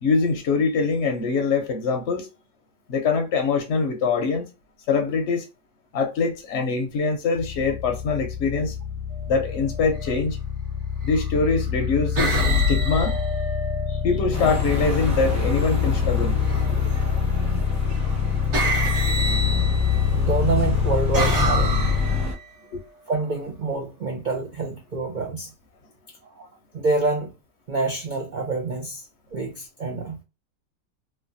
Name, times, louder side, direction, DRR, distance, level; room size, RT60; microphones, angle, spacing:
voice 1, 0.0-2.3 2.9-4.5 4.9-5.4 5.9-8.7 9.3-10.4 11.0-13.2 13.9-16.4 22.7-22.8, left 4 dB, 60° left, 0.8 m, -23 dB
sound 1, 7.4-22.3, left 8 dB, 80° left, 1.2 m, -25 dB
sound 2, 9.9-10.2 11.1-11.5 12.2-14.2 16.4-17.0 18.0-18.1 18.5-20.2 20.7-22.4, equal, 50° right, 1.3 m, -26 dB
sound 3, 14.3-22.3, left 1 dB, 15° right, 0.7 m, -31 dB
voice 2, 20.1-21.8 23.1-25.5 26.4-26.5 26.7-27.3 27.7-29.0 29.3-30.2, right 3 dB, 80° right, 0.4 m, -27 dB
3.2 x 2.2 x 2.5 m
omnidirectional pair, 1.7 m